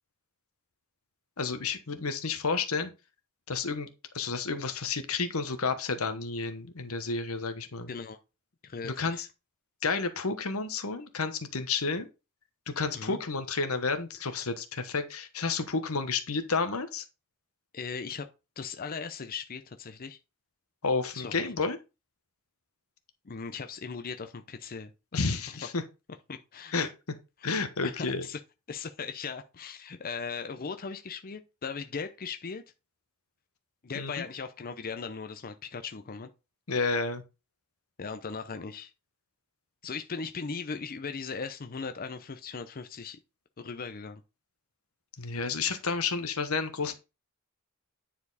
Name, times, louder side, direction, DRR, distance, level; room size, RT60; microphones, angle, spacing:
voice 1, 1.4-2.9 3.5-3.9 4.1-7.9 8.8-9.3 9.8-12.1 12.7-17.0 20.8-21.8 25.1-25.8 26.7-26.9 27.4-28.2 33.9-34.2 36.7-37.2 45.2-46.9, left 4 dB, 90° left, 1.2 m, -31 dB
voice 2, 8.6-9.3 12.9-13.2 17.7-18.3 18.6-20.2 21.1-21.5 23.2-25.7 26.3-26.9 27.4-28.4 28.7-32.6 33.8-36.3 38.0-38.9 39.8-43.2 43.6-44.2, left 5 dB, 45° left, 0.6 m, -38 dB
9.7 x 4.4 x 4.1 m
head